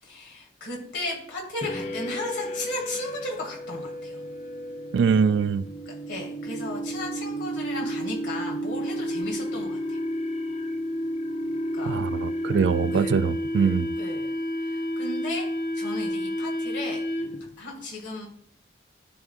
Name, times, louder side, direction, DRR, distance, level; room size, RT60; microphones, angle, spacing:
voice 1, 0.0-4.2 5.9-10.0 11.7-12.0 12.4-13.2 13.6-13.7 14.0-15.5 15.7-17.0 17.6-18.3, left 2 dB, 90° left, 2.1 m, -35 dB
sound 1, 1.6-17.5, equal, 35° left, 0.6 m, -31 dB
voice 2, 4.9-5.7 11.8-13.9, right 6 dB, 80° right, 0.3 m, -23 dB
11.0 x 3.8 x 2.4 m
head